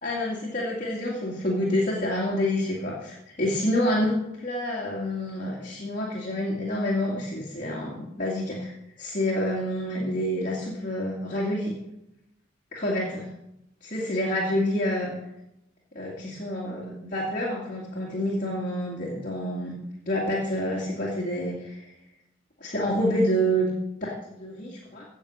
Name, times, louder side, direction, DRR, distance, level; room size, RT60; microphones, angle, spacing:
voice 1, 0.0-8.7 9.0-11.7 12.7-13.3 13.8-15.2 15.9-19.7 20.1-21.8 22.6-23.7 24.0-25.0, equal, 40° left, -4 dB, 2.3 m, -28 dB
17.0 x 6.7 x 6.4 m, 0.87 s
head